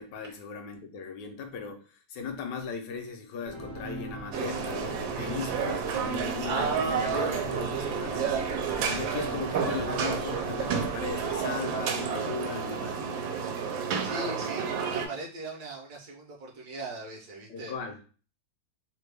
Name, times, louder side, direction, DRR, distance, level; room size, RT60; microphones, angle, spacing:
voice 1, 0.0-8.4 8.8-13.0 17.5-18.0, left 5 dB, 75° left, 5 dB, 1.2 m, -38 dB
sound 1, 3.4-11.9, right 2 dB, 40° right, 0.4 m, -42 dB
sound 2, 4.3-15.1, right 6 dB, 80° right, 1.3 m, -30 dB
voice 2, 14.0-17.7, right 2 dB, 65° right, -1 dB, 1.1 m, -40 dB
3.2 x 2.2 x 3.2 m, 0.38 s
omnidirectional pair, 2.0 m